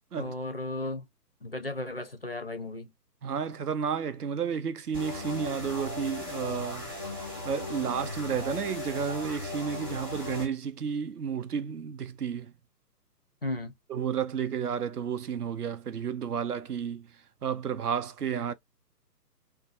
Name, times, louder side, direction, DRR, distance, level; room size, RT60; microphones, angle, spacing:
voice 1, 0.2-1.1 1.4-2.9 13.4-13.7, left 2 dB, 40° left, 0.4 m, -35 dB
voice 2, 3.2-12.5 13.9-18.5, right 7 dB, 70° right, 0.6 m, -32 dB
sound 1, 4.9-10.5, left 2 dB, 15° right, 0.6 m, -37 dB
2.5 x 2.3 x 2.3 m
figure-of-eight pair, 135°, 48 cm